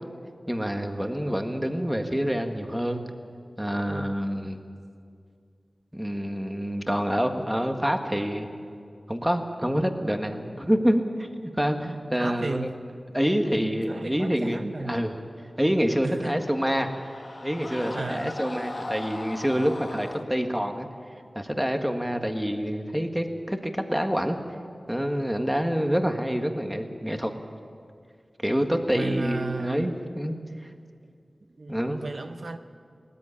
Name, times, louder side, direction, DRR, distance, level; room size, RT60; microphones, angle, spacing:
voice 1, 0.5-3.0 3.6-4.6 5.9-8.5 9.1-12.7 13.1-15.1 15.6-17.0 17.4-20.9 21.3-24.4 24.9-27.3 28.4-30.4 31.7-32.0, equal, 5° right, 1.7 m, -27 dB
voice 2, 3.9-4.2 12.2-12.8 13.5-15.0 16.0-16.4 17.9-18.3 28.9-29.9 31.6-32.6, right 3 dB, 60° right, 0.7 m, -34 dB
Screaming, 15.8-20.3, left 2 dB, 50° left, 1.2 m, -39 dB
19.0 x 14.0 x 9.9 m
wide cardioid pair, 65°, 0 cm